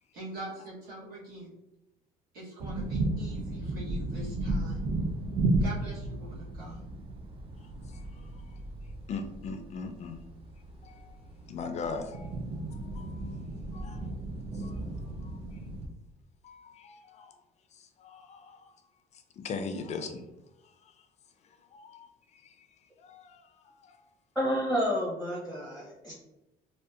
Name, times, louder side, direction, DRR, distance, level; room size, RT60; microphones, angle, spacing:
voice 1, 0.1-1.5 2.3-4.9 5.6-6.8, right 2 dB, 60° right, -7 dB, 1.0 m, -43 dB
sound 1, 2.6-15.9, right 2 dB, 35° right, 0.3 m, -34 dB
voice 2, 9.1-10.2 10.8-11.2 11.5-12.3 12.9-13.2 13.7-14.1 14.6-14.7 16.4-17.3 18.0-18.6 19.4-20.2 21.7-22.1 23.0-23.4, left 4 dB, 40° left, 7 dB, 0.4 m, -39 dB
voice 3, 24.3-26.1, equal, 5° right, -7 dB, 0.8 m, -30 dB
2.6 x 2.2 x 2.3 m, 0.93 s
cardioid pair, 110°, 17 cm